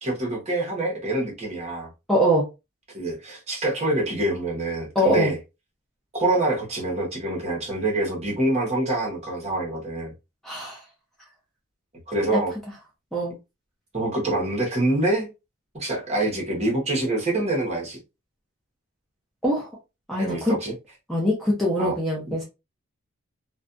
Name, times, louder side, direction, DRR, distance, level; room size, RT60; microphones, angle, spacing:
voice 1, 0.0-1.9 2.9-5.4 6.1-10.1 12.1-12.5 13.9-15.3 15.7-18.0 20.2-20.7 21.8-22.0 22.3-22.4, right 2 dB, 30° right, 0.9 m, -26 dB
voice 2, 2.1-2.4 4.9-5.3 10.4-10.8 13.1-13.3 19.4-19.7 20.1-20.5 21.1-22.4, equal, ahead, 0.6 m, -23 dB
2.4 x 2.2 x 2.4 m
head